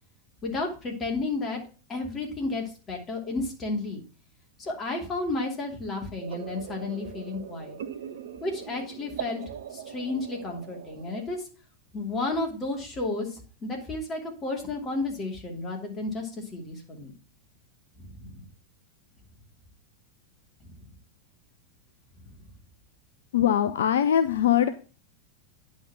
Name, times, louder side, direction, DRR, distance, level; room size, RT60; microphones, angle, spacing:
voice 1, 0.4-1.6 1.9-4.0 4.6-7.8 8.4-9.4 9.7-11.4 11.9-17.1 18.0-18.4 20.6-20.7, left 2 dB, 20° left, 0 dB, 2.8 m, -32 dB
sound 1, 6.2-11.3, right 9 dB, 60° right, 0.6 m, -40 dB
voice 2, 23.3-24.7, left 10 dB, 60° left, 10 dB, 0.5 m, -22 dB
9.9 x 4.3 x 5.7 m, 0.36 s
figure-of-eight pair, 90°, 0 cm